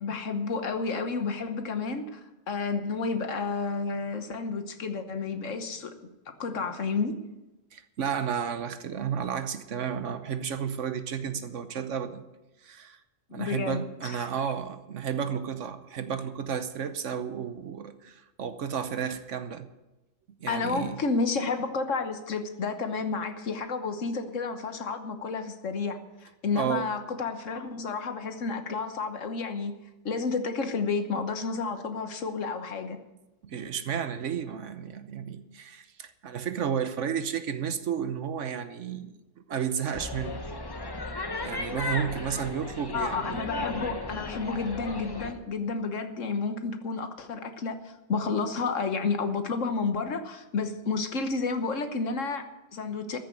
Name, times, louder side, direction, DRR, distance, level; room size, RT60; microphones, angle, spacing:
voice 1, 0.0-2.2 2.5-5.9 6.3-7.1 13.3-14.3 20.5-29.7 30.0-33.0 42.9-53.2, left 4 dB, 70° left, 8 dB, 1.5 m, -31 dB
voice 2, 7.7-12.2 12.6-13.0 13.3-19.7 20.4-21.0 26.5-26.9 33.4-39.1 39.5-40.4 41.4-43.5, right 7 dB, 65° right, 10 dB, 1.2 m, -32 dB
sound 1, 39.9-45.3, left 2 dB, 20° left, 0.8 m, -35 dB
14.0 x 6.7 x 9.2 m, 1.0 s
omnidirectional pair, 1.4 m